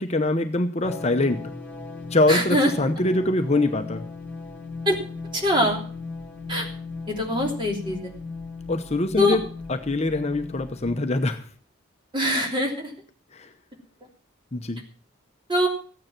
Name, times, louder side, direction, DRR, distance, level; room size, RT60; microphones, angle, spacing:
voice 1, 0.0-1.4 2.1-4.0 8.7-9.4 9.7-11.5 13.3-13.5 14.5-14.8, left 2 dB, 35° left, 7 dB, 0.9 m, -23 dB
sound 1, 0.8-11.0, left 3 dB, 10° left, 2.0 m, -37 dB
voice 2, 2.3-2.7 4.8-5.0 5.3-5.8 6.5-6.7 7.1-8.1 9.2-9.4 12.1-12.9 15.5-15.7, equal, 25° right, 1 dB, 3.2 m, -23 dB
14.5 x 9.6 x 6.0 m, 0.41 s
head